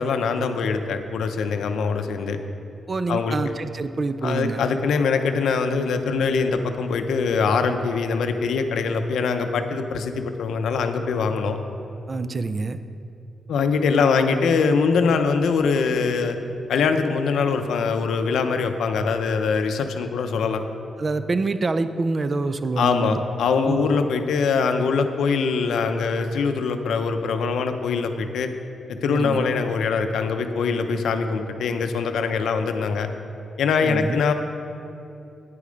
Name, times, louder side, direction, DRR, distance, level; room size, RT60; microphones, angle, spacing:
voice 1, 0.0-2.4 3.1-3.4 4.2-11.6 13.5-16.4 16.7-20.6 22.8-28.5 28.9-33.1 33.6-34.3, left 5 dB, 85° left, 7 dB, 0.6 m, -23 dB
voice 2, 2.9-4.6 12.1-12.8 21.0-23.2 23.7-23.9 29.1-29.5 33.8-34.2, right 3 dB, 30° right, 12 dB, 0.4 m, -26 dB
9.5 x 8.4 x 5.1 m, 2.7 s
wide cardioid pair, 155°, 0 cm